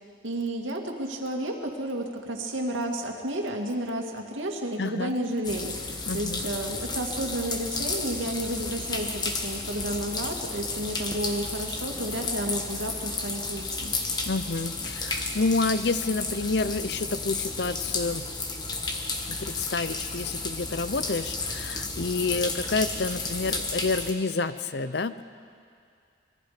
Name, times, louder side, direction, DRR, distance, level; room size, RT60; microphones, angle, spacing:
voice 1, 0.2-13.9, right 1 dB, 85° right, 2 dB, 2.4 m, -32 dB
voice 2, 4.8-5.2 6.1-6.5 14.3-18.3 19.2-25.2, left 3 dB, 60° left, 13 dB, 0.6 m, -29 dB
sound 1, 5.4-24.1, left 3 dB, 20° left, 1.3 m, -32 dB
26.0 x 22.0 x 5.2 m, 2.3 s
head